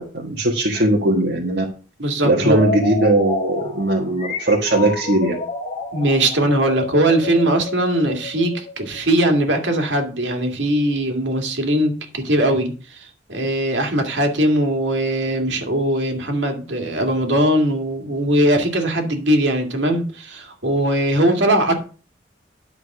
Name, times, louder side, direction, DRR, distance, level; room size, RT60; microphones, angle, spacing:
voice 1, 0.0-1.6 2.2-5.4, right 1 dB, 65° right, -1 dB, 1.5 m, -19 dB
voice 2, 2.0-2.6 5.9-21.7, right 1 dB, 85° right, 4 dB, 2.2 m, -20 dB
sound 1, 2.4-9.1, left 3 dB, 40° left, 1.6 m, -30 dB
10.5 x 5.0 x 6.0 m, 0.37 s
head